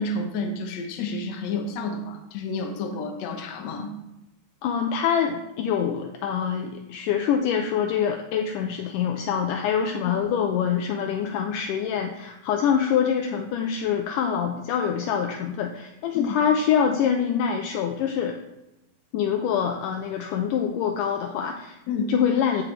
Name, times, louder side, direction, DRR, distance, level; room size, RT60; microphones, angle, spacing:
voice 1, 0.0-3.9 10.1-10.2 16.1-16.4 21.9-22.2, left 3 dB, 65° left, 3 dB, 1.9 m, -30 dB
voice 2, 4.6-18.4 19.1-21.8 22.1-22.6, left 8 dB, 80° left, 4 dB, 2.0 m, -25 dB
14.5 x 4.9 x 3.3 m, 0.93 s
omnidirectional pair, 4.1 m